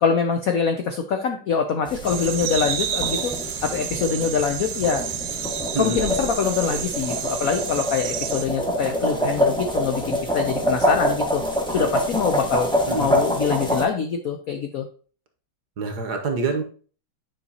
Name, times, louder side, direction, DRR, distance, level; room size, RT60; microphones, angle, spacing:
voice 1, 0.0-3.3 3.6-5.0 5.8-11.4 11.7-12.7 13.0-14.8, left 6 dB, 85° left, 6 dB, 0.7 m, -24 dB
sound 1, 1.9-13.8, equal, 5° left, 0.5 m, -26 dB
sound 2, 2.1-8.5, right 9 dB, 80° right, 1.5 m, -30 dB
voice 2, 12.9-13.2 15.8-16.6, right 3 dB, 60° right, 5 dB, 1.3 m, -26 dB
9.6 x 5.6 x 2.8 m, 0.41 s
omnidirectional pair, 2.3 m